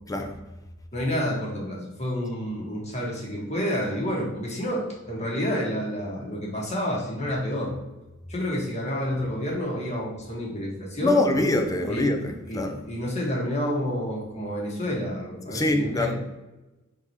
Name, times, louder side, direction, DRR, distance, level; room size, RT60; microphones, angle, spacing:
voice 1, 0.9-7.7 8.3-11.2 11.8-12.2 12.5-16.1, equal, 35° left, 1.2 m, -29 dB
voice 2, 11.0-12.8 15.5-16.1, left 2 dB, 15° left, 0.4 m, -24 dB
4.6 x 3.7 x 2.8 m
head